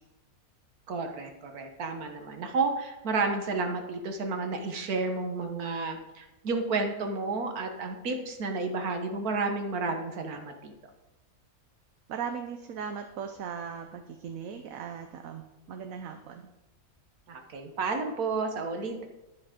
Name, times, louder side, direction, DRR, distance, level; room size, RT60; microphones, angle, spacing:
voice 1, 0.9-10.7 17.3-19.1, right 3 dB, 90° right, 5 dB, 1.7 m, -31 dB
voice 2, 12.1-16.4, right 7 dB, 70° right, 6 dB, 1.2 m, -38 dB
10.0 x 10.0 x 5.1 m, 1.0 s
omnidirectional pair, 1.5 m